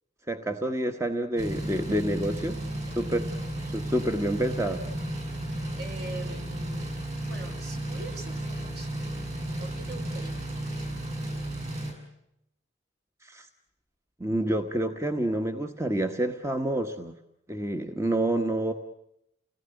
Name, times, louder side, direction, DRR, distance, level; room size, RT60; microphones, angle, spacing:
voice 1, 0.3-2.6 2.9-3.3 3.7-4.8 13.2-13.5 14.2-17.1 17.5-18.7, right 1 dB, 15° right, 6 dB, 1.3 m, -28 dB
sound 1, 1.4-11.9, right 1 dB, 35° right, 7.3 m, -34 dB
voice 2, 5.7-9.0 9.6-10.9, right 2 dB, 55° right, 3 dB, 5.5 m, -44 dB
30.0 x 19.0 x 9.1 m, 0.81 s
head